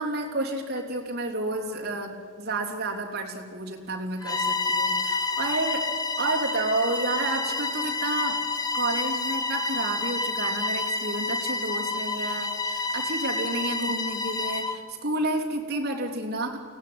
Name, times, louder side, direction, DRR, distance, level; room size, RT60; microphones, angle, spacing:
voice 1, 0.0-5.9 6.2-8.4 8.7-16.6, right 2 dB, 45° right, -1 dB, 3.3 m, -30 dB
Bowed string instrument, 4.2-14.8, left 3 dB, 15° left, 1.2 m, -29 dB
23.0 x 17.5 x 9.5 m, 2.1 s
head